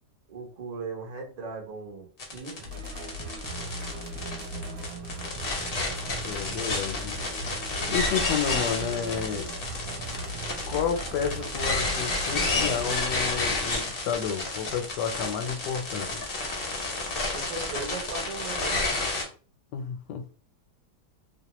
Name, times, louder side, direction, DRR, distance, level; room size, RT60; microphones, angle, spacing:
voice 1, 0.3-2.9 17.3-18.8, right 4 dB, 40° right, 0.6 m, -38 dB
sound 1, 2.2-19.2, left 3 dB, 50° left, 0.7 m, -30 dB
sound 2, 2.6-12.9, right 1 dB, 65° right, 1.0 m, -38 dB
voice 2, 6.2-7.2 7.9-9.5 10.7-16.2 19.7-20.3, left 7 dB, 85° left, 1.2 m, -31 dB
2.7 x 2.1 x 2.9 m
omnidirectional pair, 1.8 m